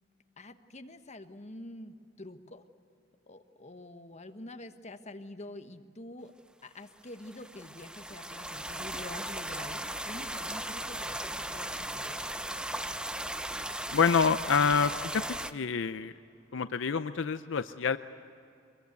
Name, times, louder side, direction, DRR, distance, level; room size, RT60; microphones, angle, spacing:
voice 1, 0.4-2.6 3.3-6.3 6.6-12.2, left 1 dB, 35° left, 7 dB, 1.2 m, -46 dB
sound 1, 7.1-15.5, right 1 dB, 5° right, 0.7 m, -37 dB
voice 2, 13.9-15.2 15.5-16.1 16.5-18.0, left 5 dB, 70° left, 11 dB, 0.6 m, -27 dB
24.0 x 21.5 x 8.2 m, 2.7 s
head